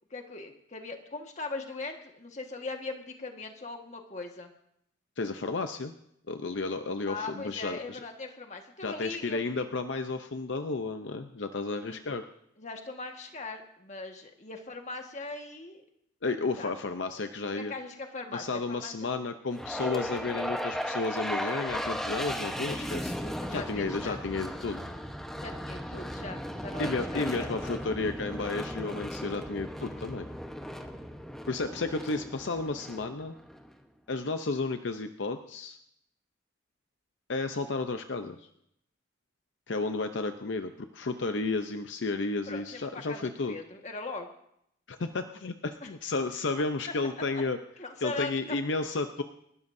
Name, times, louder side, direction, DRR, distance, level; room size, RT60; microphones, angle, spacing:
voice 1, 0.1-4.5 7.1-9.4 11.8-12.0 12.6-15.8 16.6-16.7 17.5-18.9 22.6-23.0 23.2-24.2 25.4-27.5 42.5-44.3 45.8-45.9 47.8-48.6, left 3 dB, 40° left, 3 dB, 1.6 m, -40 dB
voice 2, 5.2-5.9 6.3-8.0 8.8-12.2 16.2-17.7 18.3-23.1 23.5-24.8 26.8-30.3 31.5-33.4 34.1-35.8 37.3-38.5 39.7-43.6 44.9-47.6 48.0-49.2, left 3 dB, 70° left, 7 dB, 0.7 m, -32 dB
sound 1, 19.5-33.7, equal, ahead, 1.0 m, -36 dB
29.0 x 12.5 x 2.7 m, 0.75 s
head